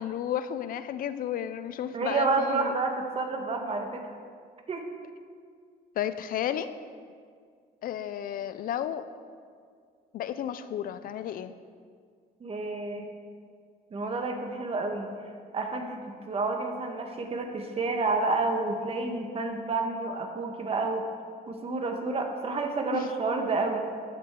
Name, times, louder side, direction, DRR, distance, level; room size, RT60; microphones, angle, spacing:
voice 1, 0.0-2.7 6.0-6.7 7.8-9.1 10.1-11.5 22.9-23.1, left 10 dB, 55° left, 12 dB, 0.5 m, -32 dB
voice 2, 1.9-4.1 4.7-4.9 12.4-13.1 13.9-15.1 15.5-21.1 21.5-23.8, right 3 dB, 35° right, 4 dB, 1.4 m, -29 dB
14.0 x 7.8 x 3.7 m, 2.1 s
cardioid pair, 110°, 17 cm